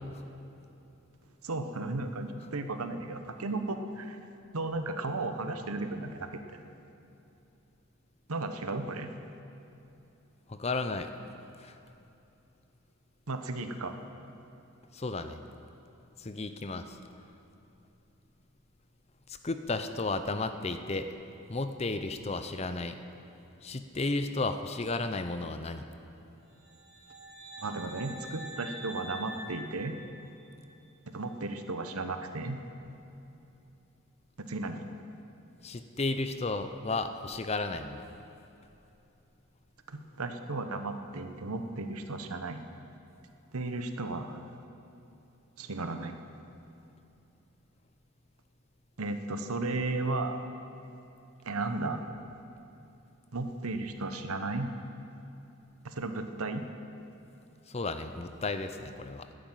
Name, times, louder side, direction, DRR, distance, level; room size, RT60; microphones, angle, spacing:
voice 1, 1.4-4.2 4.5-6.4 8.3-9.1 13.3-14.0 27.6-29.9 31.1-32.6 34.5-34.9 39.9-42.6 43.5-44.4 45.6-46.2 49.0-50.4 51.4-52.0 53.3-54.7 55.8-56.6, right 2 dB, 80° right, 7 dB, 1.0 m, -34 dB
voice 2, 10.5-11.1 11.6-11.8 14.9-15.4 16.2-17.0 19.4-21.1 21.5-23.0 23.6-25.9 35.6-38.0 57.7-59.3, left 3 dB, 30° left, 9 dB, 0.6 m, -33 dB
sound 1, 26.6-30.6, equal, 50° right, 2.4 m, -45 dB
12.0 x 9.6 x 9.0 m, 2.9 s
head